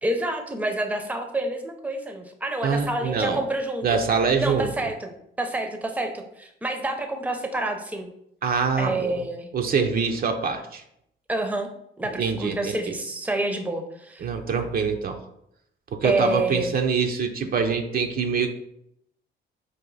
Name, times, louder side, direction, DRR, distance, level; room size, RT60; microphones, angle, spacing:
voice 1, 0.0-3.9 4.4-5.1 5.4-8.1 8.8-9.5 11.3-11.7 12.0-14.3 16.0-16.7, right 2 dB, 5° right, 5 dB, 0.6 m, -28 dB
voice 2, 2.6-3.4 3.8-4.7 8.4-9.2 9.5-10.8 12.2-12.9 14.2-15.2 15.9-18.5, right 5 dB, 50° right, 4 dB, 0.5 m, -24 dB
4.9 x 2.6 x 3.9 m, 0.76 s
cardioid pair, 90°, 20 cm